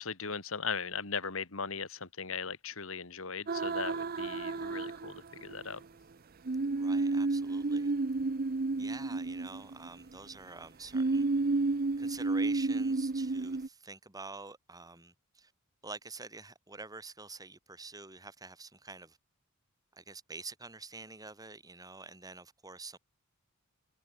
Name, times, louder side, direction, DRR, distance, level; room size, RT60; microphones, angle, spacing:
voice 1, 0.0-5.8, left 5 dB, 65° left, 2.2 m, -38 dB
sound 1, 3.5-5.6 6.5-10.2 10.9-13.7, right 3 dB, 45° right, 0.7 m, -31 dB
voice 2, 6.7-7.9 8.8-11.3 12.0-15.5 15.8-19.2 19.9-23.0, right 3 dB, 15° right, 3.7 m, -47 dB
head